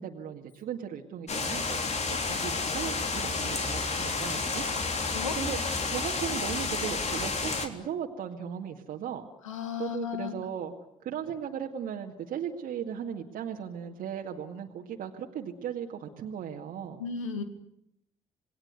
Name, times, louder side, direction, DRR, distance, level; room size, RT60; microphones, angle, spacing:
voice 1, 0.0-4.7 5.3-5.6 5.9-9.3 9.8-10.7 11.0-17.0, right 8 dB, 60° right, 1 dB, 2.2 m, -37 dB
sound 1, 1.3-7.7, left 4 dB, 45° left, 3.7 m, -30 dB
voice 2, 9.4-10.4 17.0-17.4, left 6 dB, 90° left, 8 dB, 2.2 m, -34 dB
28.0 x 19.5 x 9.6 m, 0.78 s
hypercardioid pair, 45°, 16 cm